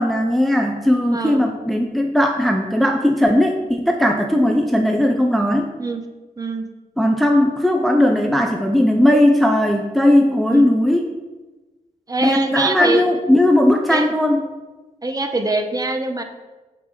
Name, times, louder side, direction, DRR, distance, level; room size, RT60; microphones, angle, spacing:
voice 1, 0.0-5.7 7.0-11.1 12.2-14.4, left 1 dB, ahead, 3 dB, 0.5 m, -17 dB
voice 2, 6.4-6.7 10.5-10.7 12.1-13.0 13.9-14.1 15.0-16.2, right 2 dB, 25° right, 5 dB, 0.8 m, -23 dB
7.3 x 5.8 x 4.8 m, 1.2 s
wide cardioid pair, 135°, 15 cm